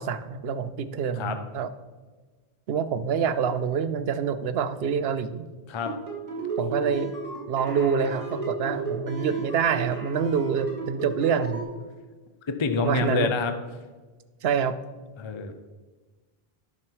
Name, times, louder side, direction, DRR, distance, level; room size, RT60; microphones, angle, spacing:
voice 1, 0.0-1.7 2.7-5.5 6.6-7.1 7.5-11.7 12.8-13.3 14.4-14.8, right 6 dB, 75° right, 12 dB, 0.9 m, -26 dB
sound 1, 5.8-11.6, right 4 dB, 35° right, 2.7 m, -34 dB
voice 2, 12.5-13.5 15.2-15.6, left 4 dB, 35° left, 7 dB, 0.6 m, -27 dB
10.5 x 6.1 x 4.6 m, 1.3 s
omnidirectional pair, 1.0 m